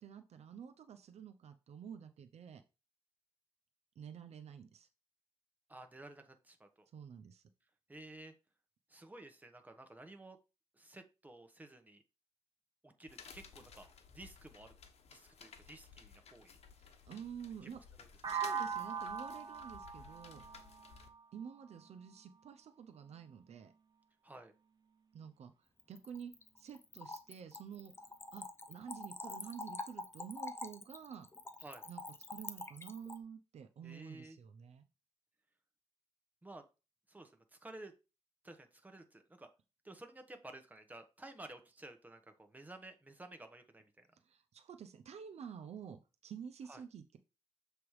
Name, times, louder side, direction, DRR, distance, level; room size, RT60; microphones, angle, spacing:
voice 1, 0.0-2.6 4.0-4.9 6.9-7.4 16.8-17.8 18.3-20.4 21.3-23.7 25.1-27.9 28.3-31.3 31.9-32.0 32.3-34.8 44.2-47.2, right 7 dB, 70° right, 8 dB, 0.7 m, -50 dB
voice 2, 5.7-6.9 7.9-8.3 8.9-10.4 10.7-12.0 12.8-14.7 15.1-16.6 18.0-18.1 24.2-24.5 31.6-31.9 33.8-34.4 36.4-36.6 37.1-37.9 38.4-39.5 39.8-44.1 46.7-46.8, right 2 dB, 15° right, 6 dB, 1.3 m, -53 dB
sound 1, 13.1-21.1, left 6 dB, 65° left, 1.0 m, -57 dB
sound 2, 18.2-22.1, right 6 dB, 40° right, 1.0 m, -41 dB
Splash splatter / Trickle dribble, 25.8-33.2, left 2 dB, 20° left, 0.7 m, -46 dB
7.1 x 3.4 x 4.8 m, 0.30 s
cardioid pair, 85°, 11 cm